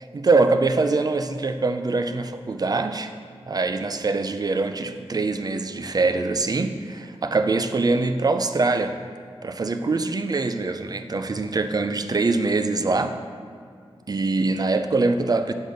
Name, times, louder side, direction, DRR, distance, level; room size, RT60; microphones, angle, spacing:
voice 1, 0.1-3.1 3.5-9.0 9.4-13.2 14.1-15.5, right 3 dB, 40° right, 8 dB, 0.4 m, -23 dB
6.7 x 4.0 x 5.0 m, 2.2 s
wide cardioid pair, 70°, 10 cm